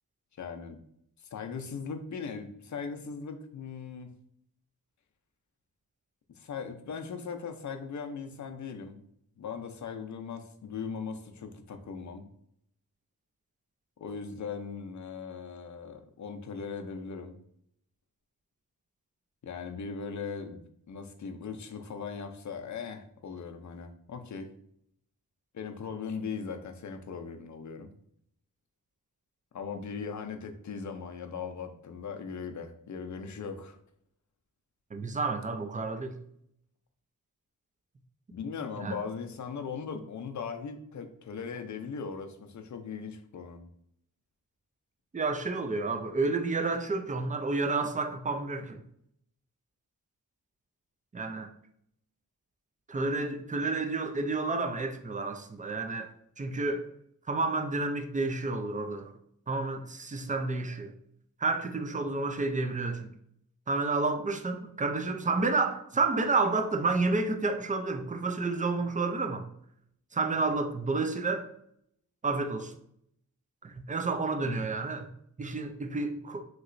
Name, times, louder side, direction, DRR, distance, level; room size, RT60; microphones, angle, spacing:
voice 1, 0.4-0.8 1.3-4.1 6.3-9.0 9.4-12.3 14.0-17.4 19.4-20.6 20.9-24.5 25.5-27.9 29.5-33.8 38.3-43.7 74.4-74.6, left 5 dB, 55° left, 0.5 m, -39 dB
voice 2, 34.9-36.2 38.8-39.0 45.1-48.8 51.1-51.5 52.9-56.9 57.3-59.1 59.5-60.9 61.4-63.1 63.7-69.5 70.1-71.5 72.2-72.7 73.6-75.1 75.4-76.4, right 3 dB, 25° right, 0.3 m, -30 dB
3.0 x 2.8 x 2.5 m
wide cardioid pair, 65°, 36 cm